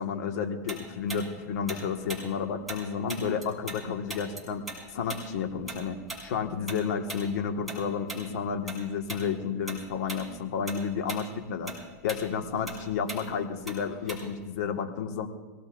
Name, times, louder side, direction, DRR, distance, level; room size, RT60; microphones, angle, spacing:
voice 1, 0.0-4.6 4.9-11.7 12.0-15.3, left 6 dB, 75° left, 4 dB, 1.7 m, -31 dB
Tick-tock, 0.7-3.8 4.1-8.8 9.1-9.3 9.7-10.3 10.5-14.5, right 2 dB, ahead, 6.5 m, -40 dB
25.0 x 18.0 x 2.6 m, 1.2 s
hypercardioid pair, 115°, 9 cm